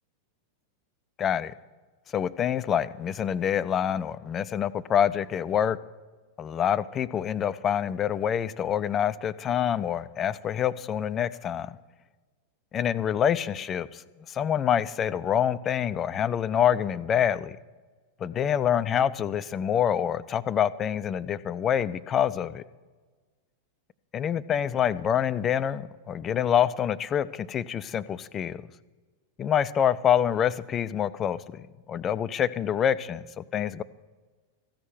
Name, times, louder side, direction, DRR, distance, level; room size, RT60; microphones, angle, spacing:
voice 1, 1.2-1.5 2.1-5.8 6.4-11.8 12.7-14.0 14.3-17.6 18.2-22.6 24.1-28.6 29.4-33.8, left 9 dB, 25° left, 16 dB, 0.5 m, -26 dB
14.5 x 6.3 x 9.1 m, 1.3 s
figure-of-eight pair, 90°, 0 cm